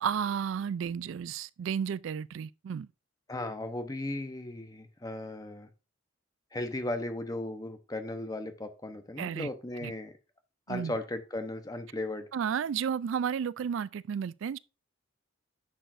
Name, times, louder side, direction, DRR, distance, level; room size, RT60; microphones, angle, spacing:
voice 1, 0.0-2.9 9.2-9.5 9.8-9.9 10.7-10.9 12.3-14.6, right 7 dB, 70° right, 0.3 m, -32 dB
voice 2, 3.3-5.7 6.5-10.1 10.7-12.3, left 1 dB, 20° left, 0.8 m, -36 dB
10.0 x 6.6 x 2.6 m
head